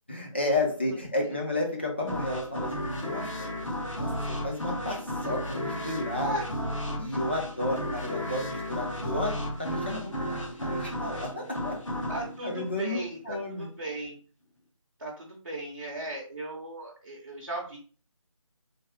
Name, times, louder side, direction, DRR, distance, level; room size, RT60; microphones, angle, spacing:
voice 1, 0.1-3.5 4.0-6.3 7.0-11.8 12.4-13.7, left 1 dB, 20° left, -1 dB, 0.5 m, -32 dB
voice 2, 0.9-1.4 6.2-6.5 6.9-7.0 7.8-8.1 12.1-14.2 15.0-17.8, right 1 dB, 40° right, -3 dB, 0.7 m, -37 dB
sound 1, 2.1-13.5, left 1 dB, 65° left, 1.0 m, -34 dB
3.3 x 2.0 x 3.7 m, 0.39 s
figure-of-eight pair, 160°, 17 cm